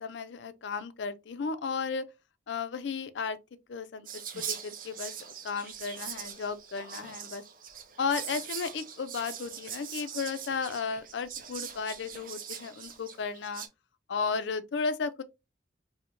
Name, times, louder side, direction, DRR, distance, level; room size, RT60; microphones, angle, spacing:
voice 1, 0.0-2.1 2.5-3.4 3.7-4.1 4.4-5.1 5.4-7.4 8.0-13.6 14.1-15.2, left 5 dB, 70° left, 0.4 m, -34 dB
Whispering, 4.0-13.7, right 8 dB, 45° right, 0.5 m, -42 dB
4.4 x 2.1 x 2.5 m
head